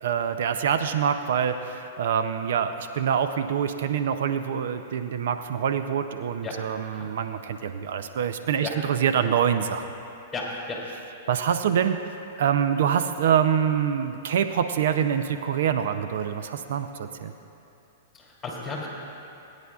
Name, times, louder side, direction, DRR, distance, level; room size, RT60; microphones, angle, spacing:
voice 1, 0.0-9.8 11.3-12.0 12.4-17.3, right 8 dB, 70° right, 9 dB, 0.5 m, -25 dB
voice 2, 10.3-10.8 18.1-18.9, left 3 dB, 15° left, -3 dB, 2.8 m, -34 dB
21.0 x 9.7 x 2.4 m, 2.7 s
hypercardioid pair, 130°, 0 cm